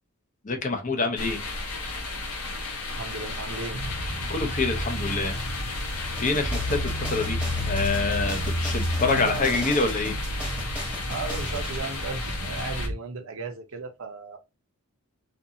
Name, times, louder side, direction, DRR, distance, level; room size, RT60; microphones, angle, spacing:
voice 1, 0.4-1.4 4.3-5.4 6.2-7.4 7.7-10.1, left 3 dB, 35° left, 0.6 m, -26 dB
sound 1, 1.2-12.9, left 3 dB, 85° left, 0.8 m, -34 dB
voice 2, 2.9-3.8 9.1-9.5 11.1-14.4, right 4 dB, 65° right, 0.6 m, -35 dB
sound 2, 3.7-12.9, equal, 70° left, 1.1 m, -32 dB
sound 3, 6.2-11.8, equal, 5° right, 1.0 m, -37 dB
2.6 x 2.4 x 2.7 m
head